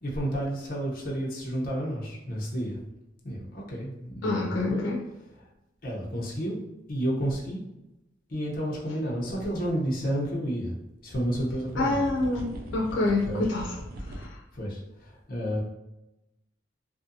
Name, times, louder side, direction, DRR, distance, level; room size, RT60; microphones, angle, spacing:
voice 1, 0.0-2.8 3.2-4.8 5.4-5.5 5.8-6.6 6.9-7.6 8.3-10.7 11.0-12.0 13.3-13.4 14.5-15.6, equal, 50° left, -4 dB, 0.7 m, -31 dB
voice 2, 4.2-5.0 11.8-13.8 14.1-14.3, left 2 dB, 90° left, -2 dB, 0.5 m, -27 dB
sound 1, 9.4-9.7 10.1-10.2 11.4-14.3, right 1 dB, 55° right, 0.4 m, -40 dB
2.6 x 2.6 x 2.6 m, 0.93 s
head